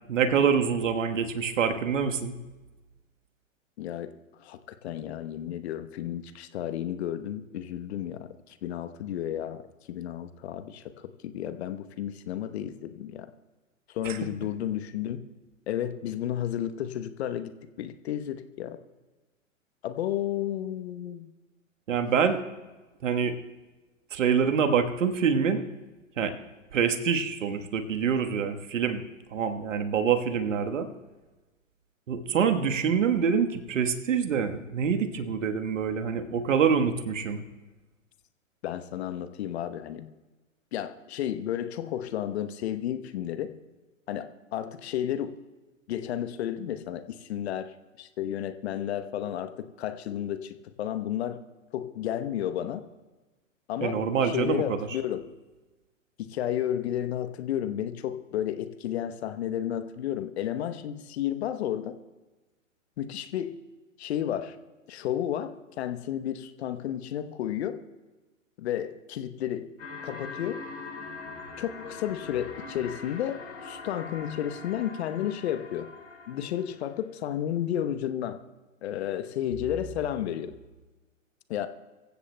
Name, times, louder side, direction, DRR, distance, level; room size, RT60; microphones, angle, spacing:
voice 1, 0.1-2.4 14.0-14.2 21.9-22.4 23.0-23.4 24.1-25.7 26.2-26.3 26.7-29.0 29.3-30.9 32.1-37.4 53.8-54.9, right 6 dB, 65° right, 7 dB, 1.4 m, -26 dB
voice 2, 3.8-4.1 4.4-9.6 9.9-13.3 13.9-15.3 15.7-18.8 19.8-21.3 38.6-40.1 40.7-43.6 44.1-45.4 45.9-51.4 51.7-52.8 53.7-55.3 56.2-62.0 63.0-63.6 64.0-64.6 64.9-67.8 68.6-69.7 70.0-70.7 71.6-75.9 76.3-78.4 78.8-80.6 81.5-81.7, left 11 dB, 50° left, 11 dB, 1.0 m, -32 dB
sound 1, 69.8-77.0, left 4 dB, 70° left, 4.7 m, -42 dB
24.0 x 15.5 x 2.2 m, 1.2 s
hypercardioid pair, 115°, 40 cm